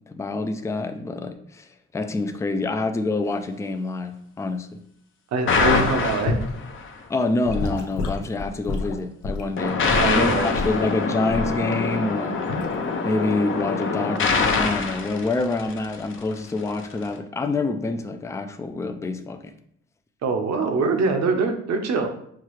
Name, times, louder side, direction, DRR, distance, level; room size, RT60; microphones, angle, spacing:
voice 1, 0.1-1.7 1.9-4.8 7.1-9.8 10.1-12.4 13.0-19.5, left 3 dB, 10° left, 7 dB, 0.3 m, -27 dB
voice 2, 5.3-6.4 9.9-10.5 20.2-22.1, right 4 dB, 60° right, 5 dB, 0.8 m, -23 dB
sound 1, 5.5-6.9 9.6-16.1, left 4 dB, 40° left, 0.7 m, -24 dB
Gurgling / Sink (filling or washing) / Liquid, 6.3-6.5 7.4-10.1 10.5-10.8 11.3-11.6 12.5-12.7, left 3 dB, 75° left, 0.7 m, -28 dB
5.8 x 2.3 x 3.1 m, 0.68 s
cardioid pair, 90°, 30 cm